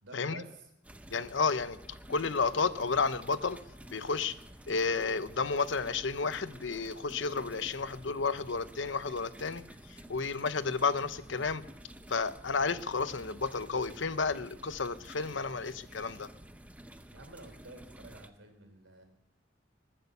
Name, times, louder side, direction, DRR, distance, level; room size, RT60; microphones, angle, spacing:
voice 1, 0.0-0.7 17.1-19.0, right 2 dB, 90° right, 6 dB, 3.5 m, -50 dB
sound 1, 0.8-18.3, right 1 dB, 5° right, 0.6 m, -51 dB
voice 2, 1.1-1.8 2.1-3.6 3.9-4.3 4.7-9.6 10.1-11.6 12.1-16.3, left 4 dB, 70° left, 13 dB, 0.8 m, -31 dB
21.0 x 9.0 x 6.8 m, 0.80 s
head